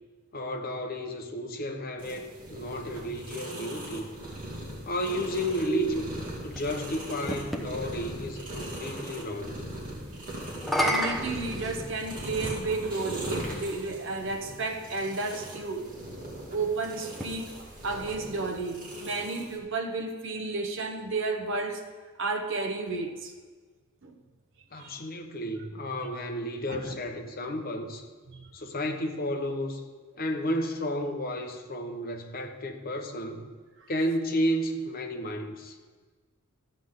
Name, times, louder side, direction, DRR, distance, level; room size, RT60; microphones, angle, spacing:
voice 1, 0.3-4.1 4.9-9.6 24.7-28.1 28.5-29.8 30.2-33.5 33.9-35.8, equal, 45° left, 1.0 m, -32 dB
sound 1, 2.0-19.6, right 1 dB, 40° right, 2.1 m, -39 dB
sound 2, 5.8-7.7 10.5-12.3 13.2-13.3 17.0-18.6, equal, ahead, 0.9 m, -32 dB
voice 2, 10.8-15.9 16.2-17.5 17.8-21.8 22.2-23.3 24.0-24.2 24.7-25.0 26.7-26.9 28.3-28.5, right 3 dB, 60° right, 0.9 m, -32 dB
13.5 x 7.9 x 3.7 m
head